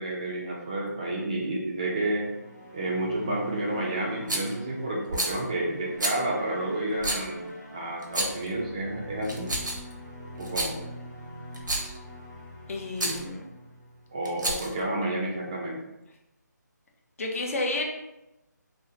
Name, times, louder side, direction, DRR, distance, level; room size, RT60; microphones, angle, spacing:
voice 1, 0.0-2.4 2.7-7.5 7.7-9.5 10.4-10.8 13.0-13.1 14.1-15.8, right 1 dB, 20° right, -3 dB, 0.3 m, -30 dB
sound 1, 2.0-14.5, equal, 80° left, 1.3 m, -42 dB
Rattle, 4.3-4.6 5.1-5.4 6.0-6.2 7.0-7.2 8.0-8.5 9.2-9.9 10.4-10.7 11.5-12.0 13.0-13.2 14.2-14.8, right 1 dB, 85° right, 0.7 m, -29 dB
voice 2, 12.7-13.4 14.7-14.8 17.2-17.8, left 2 dB, 50° left, 1 dB, 0.5 m, -31 dB
2.7 x 2.1 x 2.4 m, 0.92 s
figure-of-eight pair, 155°, 10 cm